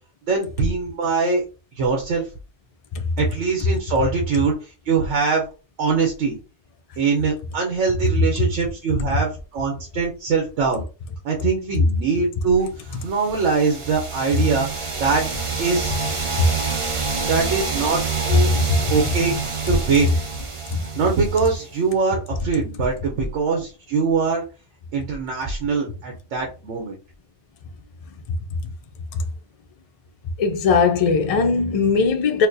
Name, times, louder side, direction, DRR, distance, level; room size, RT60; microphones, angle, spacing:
voice 1, 0.3-1.4 1.8-2.3 3.2-5.5 5.8-6.4 7.0-10.8 11.2-14.7 15.0-15.3 15.6-16.0 17.2-18.5 18.9-19.3 19.7-20.1 21.0-24.4 24.9-27.0, right 4 dB, 85° right, 1.1 m, -22 dB
sound 1, 13.0-21.8, right 5 dB, 40° right, 0.5 m, -27 dB
voice 2, 18.5-18.9 19.2-19.4 20.7-20.8 29.1-29.2 30.4-32.5, left 4 dB, 60° left, 0.3 m, -20 dB
4.3 x 2.1 x 2.6 m
omnidirectional pair, 1.2 m